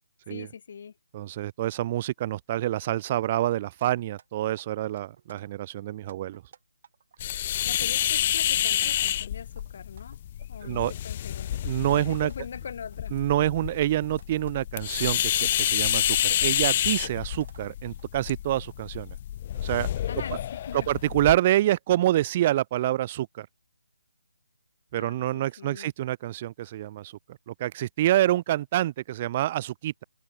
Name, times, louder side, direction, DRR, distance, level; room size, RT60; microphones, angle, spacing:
voice 1, 0.3-1.0 7.6-10.2 10.5-11.5 11.9-13.1 20.1-20.9 24.9-25.9, left 7 dB, 45° left, 3.4 m, -41 dB
voice 2, 1.1-6.4 10.6-10.9 11.6-12.3 13.1-19.1 19.6-19.9 20.9-23.5 24.9-27.2 27.5-30.0, right 14 dB, 25° right, 0.7 m, -27 dB
sound 1, 3.8-4.3 4.6-5.4 5.9-7.2 7.6-9.2 9.5-10.5 10.9-11.0 11.5-11.7 12.1-15.9 16.3-17.7 18.0-18.3 18.6-19.0, right 7 dB, 40° right, 7.0 m, -55 dB
sound 2, 7.2-21.4, left 11 dB, 30° left, 0.3 m, -29 dB
open air
figure-of-eight pair, 160°, 0 cm